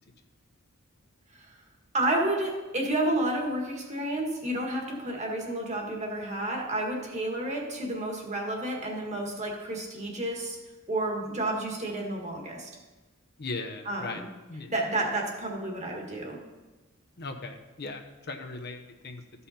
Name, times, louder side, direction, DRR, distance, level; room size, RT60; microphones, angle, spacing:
voice 1, 1.9-10.6 10.9-12.7 13.9-14.3 14.7-16.4, right 1 dB, 35° right, 0 dB, 1.8 m, -30 dB
voice 2, 13.4-14.2 14.5-14.7 17.2-19.2, left 3 dB, 50° left, 4 dB, 0.8 m, -38 dB
14.0 x 5.6 x 4.3 m, 1.1 s
head